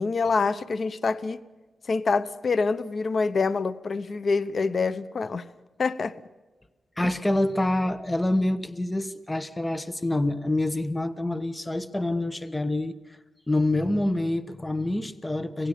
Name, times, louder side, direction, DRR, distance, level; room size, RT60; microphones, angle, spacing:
voice 1, 0.0-1.4 1.9-5.4 5.8-6.1, left 4 dB, 55° left, 0.9 m, -26 dB
voice 2, 7.0-13.2 13.5-15.7, left 1 dB, 15° left, 1.2 m, -26 dB
26.5 x 18.0 x 6.7 m
cardioid pair, 70°, 0 cm